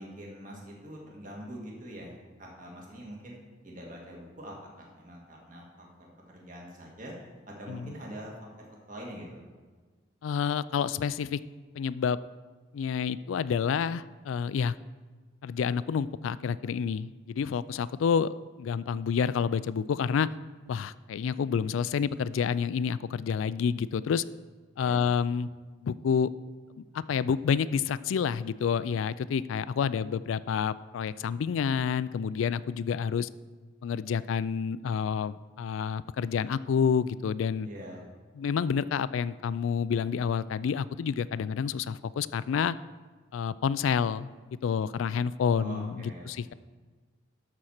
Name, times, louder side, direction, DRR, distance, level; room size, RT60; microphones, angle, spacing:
voice 1, 0.0-3.4 3.6-5.9 6.3-7.1 7.6-8.3 8.9-9.4 24.8-25.1 37.6-38.1 45.5-46.4, equal, 45° right, -2 dB, 1.9 m, -44 dB
voice 2, 10.2-11.4 11.8-12.2 12.7-14.7 15.4-20.3 20.7-24.2 24.8-25.5 25.8-26.3 26.8-33.3 33.8-37.7 38.4-42.8 43.3-44.3 44.6-46.5, left 6 dB, 90° left, 17 dB, 0.3 m, -29 dB
12.0 x 4.3 x 6.5 m, 1.4 s
head